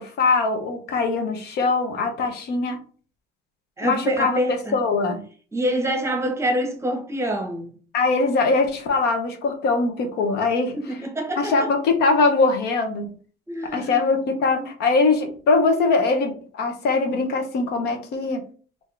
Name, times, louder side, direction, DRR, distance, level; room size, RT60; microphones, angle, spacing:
voice 1, 0.0-2.8 3.8-5.2 7.9-10.8 11.4-13.1 13.7-18.4, left 3 dB, 75° left, 0.9 m, -22 dB
voice 2, 3.8-4.8 5.5-7.7 10.7-11.7 13.5-14.1 14.6-14.7, equal, 15° right, 0.9 m, -26 dB
3.5 x 2.7 x 3.3 m
cardioid pair, 110°, 17 cm